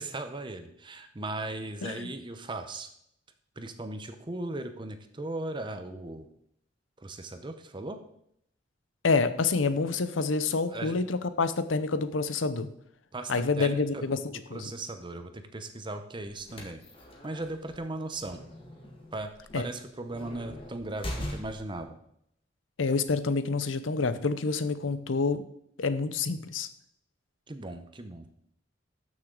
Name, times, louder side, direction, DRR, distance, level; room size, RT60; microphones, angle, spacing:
voice 1, 0.0-2.9 3.6-6.3 7.0-8.0 10.7-11.0 13.1-14.2 14.5-16.8 17.2-18.4 19.1-22.0 27.5-28.3, right 2 dB, 25° right, 8 dB, 0.7 m, -38 dB
voice 2, 9.0-12.7 13.3-14.2 14.5-14.7 19.5-19.7 22.8-25.5 25.8-26.7, left 4 dB, 90° left, 12 dB, 0.7 m, -27 dB
sound 1, 16.3-21.8, left 1 dB, 30° left, 1.7 m, -42 dB
13.0 x 6.3 x 3.8 m, 0.73 s
head